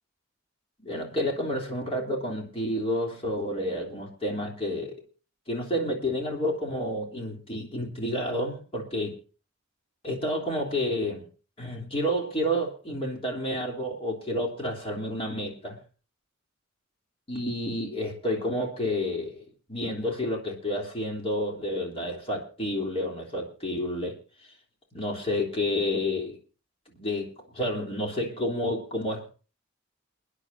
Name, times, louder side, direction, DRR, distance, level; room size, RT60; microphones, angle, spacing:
voice 1, 0.8-5.0 5.5-9.2 10.0-11.3 11.6-15.8 17.3-24.2 24.9-26.4 26.9-29.3, left 1 dB, 30° left, 0 dB, 3.2 m, -30 dB
29.5 x 9.9 x 2.6 m, 0.36 s
head